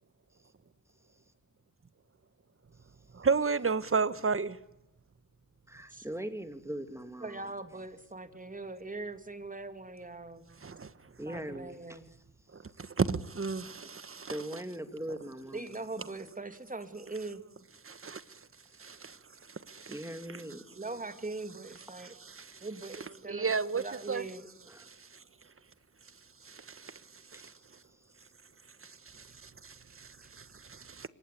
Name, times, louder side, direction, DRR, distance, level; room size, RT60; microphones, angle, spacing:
voice 1, 3.2-4.5 13.0-13.7 23.3-23.8 24.1-24.2, right 5 dB, 40° right, 1.5 m, -28 dB
voice 2, 5.7-7.5 11.2-12.2 14.3-15.8 18.7-19.1 19.9-20.6 22.2-22.4 24.7-24.9 27.3-27.6 27.9-28.0, right 1 dB, 10° right, 2.9 m, -41 dB
voice 3, 7.2-10.4 11.3-12.1 15.5-17.4 20.7-22.1 22.6-23.5 23.8-24.5, right 3 dB, 25° right, 2.9 m, -41 dB
27.5 x 25.0 x 8.6 m
wide cardioid pair, 105°, 35 cm